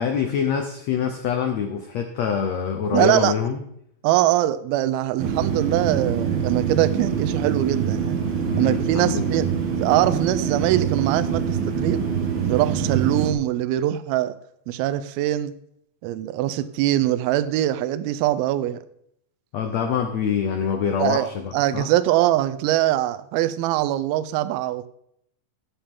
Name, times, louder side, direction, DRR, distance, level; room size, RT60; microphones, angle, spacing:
voice 1, 0.0-3.6 8.5-9.4 19.5-21.9, left 7 dB, 85° left, 5 dB, 1.5 m, -25 dB
voice 2, 2.9-3.3 4.0-8.2 8.6-9.5 9.8-12.0 12.4-14.3 14.7-15.5 16.0-18.8 21.0-21.3 21.5-24.9, right 13 dB, 80° right, 14 dB, 2.4 m, -22 dB
sound 1, 5.2-13.3, right 7 dB, 60° right, 1.3 m, -25 dB
15.5 x 7.2 x 3.7 m, 0.72 s
omnidirectional pair, 4.4 m